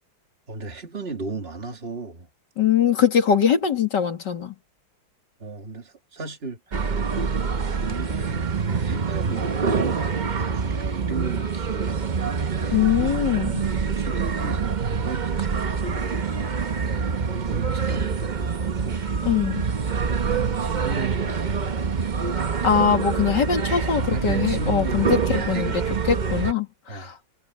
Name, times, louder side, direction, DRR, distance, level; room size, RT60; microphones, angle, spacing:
voice 1, 0.5-2.3 5.4-6.9 7.4-13.3 13.9-17.1 17.4-19.0 20.2-21.7 23.3-23.4 23.9-25.2 25.5-26.1 26.9-27.1, right 3 dB, 30° right, 2.5 m, -36 dB
voice 2, 2.6-4.5 12.7-13.6 19.2-19.6 22.6-25.8 26.1-27.2, left 8 dB, 55° left, 2.7 m, -22 dB
sound 1, 6.7-26.5, right 5 dB, 75° right, 0.4 m, -26 dB
omnidirectional pair, 2.3 m